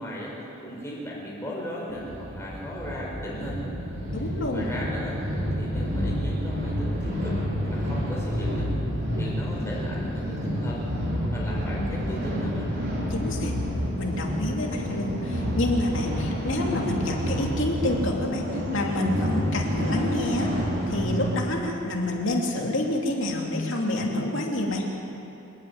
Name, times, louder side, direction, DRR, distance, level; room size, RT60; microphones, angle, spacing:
voice 1, 0.0-3.6 4.5-7.4 7.6-8.7 9.2-10.9 11.3-12.7, equal, 15° left, -5 dB, 4.9 m, -36 dB
sound 1, 1.9-21.4, equal, 50° right, 4.5 m, -29 dB
voice 2, 4.1-4.7 9.6-9.7 13.1-13.5 14.0-24.9, left 1 dB, 60° left, 0 dB, 2.9 m, -28 dB
27.5 x 9.8 x 9.7 m, 2.9 s
head